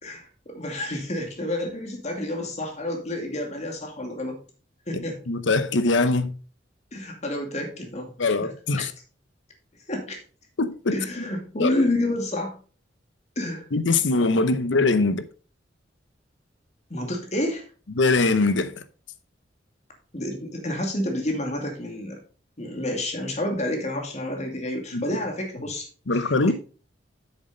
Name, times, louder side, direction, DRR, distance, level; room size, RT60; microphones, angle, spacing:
voice 1, 0.0-4.4 4.9-5.2 6.9-8.1 8.4-8.5 8.8-8.9 9.9-10.2 10.9-12.6 13.4-13.7 16.9-17.7 20.1-22.2 22.6-25.9 26.1-26.5, left 1 dB, 40° left, 2.4 m, -29 dB
voice 2, 4.9-6.3 8.2-8.9 10.6-11.0 11.6-11.8 13.7-15.2 18.0-18.7 24.9-25.0 26.1-26.5, left 3 dB, 80° left, 0.8 m, -22 dB
8.1 x 7.1 x 3.9 m
head